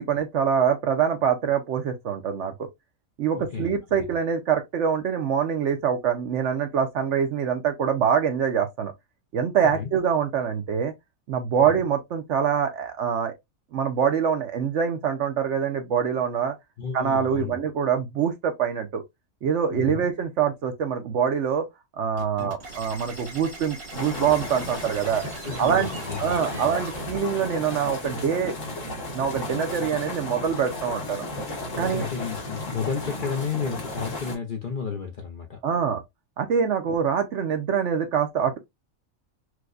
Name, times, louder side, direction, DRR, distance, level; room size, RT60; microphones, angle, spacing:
voice 1, 0.0-2.7 3.2-8.9 9.3-10.9 11.3-13.3 13.7-16.5 16.9-19.0 19.4-21.7 22.0-25.2 25.6-25.9 26.2-28.6 28.8-31.3 31.8-32.1 35.6-36.0 36.4-38.6, right 7 dB, 65° right, 0.9 m, -25 dB
voice 2, 3.3-3.7 9.6-9.9 11.6-11.8 16.8-17.6 19.7-20.0 22.4-22.5 25.4-26.7 31.7-35.6, left 6 dB, 50° left, 0.7 m, -32 dB
sound 1, 22.2-27.2, right 3 dB, 85° right, 1.8 m, -40 dB
sound 2, 23.9-34.4, left 1 dB, 65° left, 1.6 m, -34 dB
4.6 x 2.2 x 2.4 m
omnidirectional pair, 1.4 m